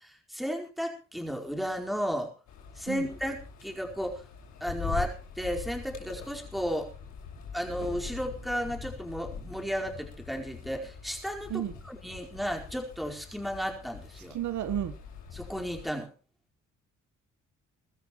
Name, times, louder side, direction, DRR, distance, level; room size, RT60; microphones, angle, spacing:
voice 1, 0.3-2.3 2.8-4.2 4.6-6.9 7.5-14.4 15.3-16.1, equal, ahead, 2 dB, 4.6 m, -34 dB
sound 1, 2.5-15.9, left 6 dB, 85° left, 6.4 m, -43 dB
voice 2, 14.3-15.0, right 11 dB, 75° right, 12 dB, 1.3 m, -32 dB
22.5 x 13.5 x 3.1 m, 0.33 s
cardioid pair, 90°, 30 cm